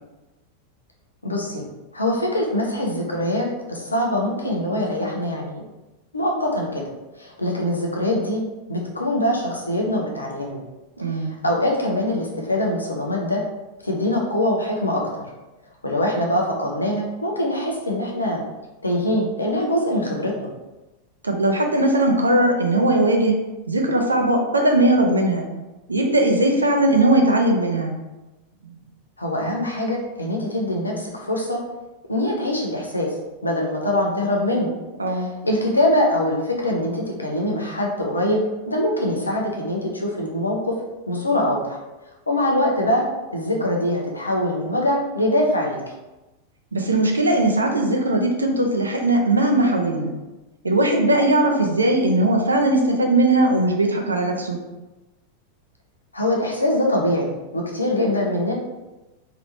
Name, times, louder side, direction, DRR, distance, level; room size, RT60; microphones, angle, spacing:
voice 1, 1.2-1.7 1.9-5.6 6.1-6.9 7.2-8.4 8.7-10.6 11.1-13.4 13.8-15.3 15.8-18.4 18.8-20.5 29.2-31.6 32.1-33.1 33.4-34.7 35.1-40.7 41.1-41.8 42.3-43.0 43.3-45.8 56.1-58.6, left 1 dB, 80° left, -1 dB, 0.7 m, -23 dB
voice 2, 11.0-11.3 21.2-25.5 25.9-27.9 28.6-28.7 35.0-35.3 46.7-50.1 50.6-54.6, right 1 dB, 80° right, 2 dB, 0.5 m, -19 dB
3.3 x 2.8 x 2.7 m, 1.1 s
figure-of-eight pair, 90°, 0 cm